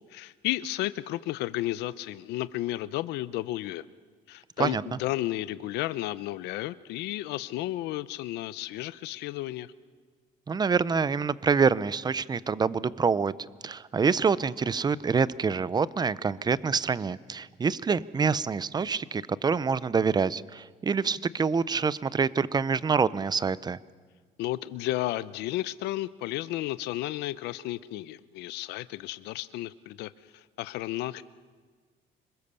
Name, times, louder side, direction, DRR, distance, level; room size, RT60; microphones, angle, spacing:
voice 1, 0.1-3.8 4.3-9.7 24.4-31.2, left 15 dB, 90° left, 16 dB, 0.7 m, -33 dB
voice 2, 10.5-13.3 13.6-23.8, right 5 dB, 25° right, 18 dB, 0.7 m, -26 dB
27.0 x 21.5 x 6.9 m, 1.5 s
cardioid pair, 110°, 17 cm